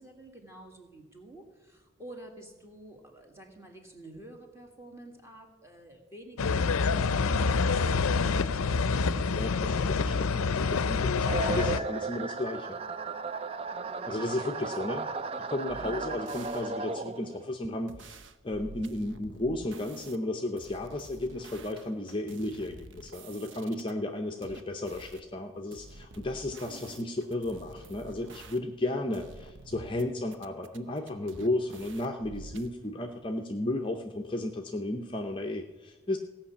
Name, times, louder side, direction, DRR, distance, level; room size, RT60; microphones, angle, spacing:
voice 1, 0.0-9.2 13.7-14.7 24.3-24.7 29.0-29.3, right 1 dB, 15° right, 2 dB, 1.8 m, -50 dB
sound 1, 6.4-11.8, left 4 dB, 90° left, 0.5 m, -27 dB
voice 2, 9.3-12.8 14.1-15.1 15.4-18.2 18.4-36.2, left 1 dB, 25° left, 4 dB, 0.7 m, -34 dB
sound 2, 11.3-17.5, right 4 dB, 30° right, 0.4 m, -35 dB
sound 3, 15.7-16.7 17.9-20.2 20.6-23.9 24.4-25.2 25.7-28.9 29.1-30.0 30.3-32.7, right 2 dB, 60° right, 0.7 m, -49 dB
16.0 x 5.8 x 8.4 m, 1.2 s
head